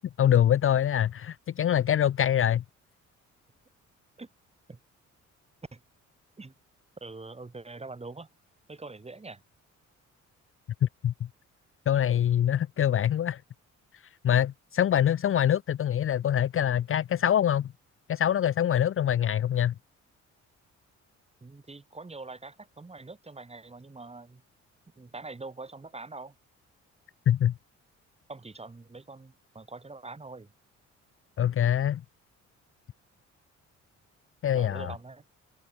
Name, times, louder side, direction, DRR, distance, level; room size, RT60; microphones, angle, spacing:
voice 1, 0.2-2.6 10.8-11.1 11.9-13.4 14.2-17.7 18.1-19.7 27.3-27.5 31.4-32.0 34.4-34.9, left 10 dB, 45° left, 0.6 m, -24 dB
voice 2, 7.0-8.3 8.7-9.4 21.4-24.4 25.0-26.4 28.3-30.5 34.5-35.2, right 3 dB, 20° right, 4.2 m, -44 dB
open air
cardioid pair, 90°, 30 cm